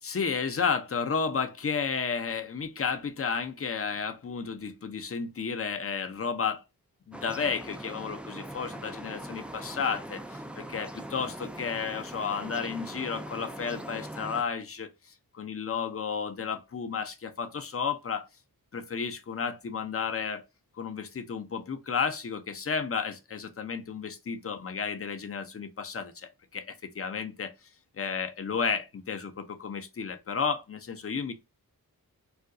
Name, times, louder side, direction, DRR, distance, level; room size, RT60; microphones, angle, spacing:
voice 1, 0.0-6.6 7.1-18.3 18.7-20.4 20.8-27.5 27.9-31.3, left 6 dB, 40° left, 0.6 m, -32 dB
sound 1, 7.1-14.4, right 1 dB, 5° right, 0.3 m, -41 dB
2.5 x 2.3 x 3.7 m
cardioid pair, 60°, 37 cm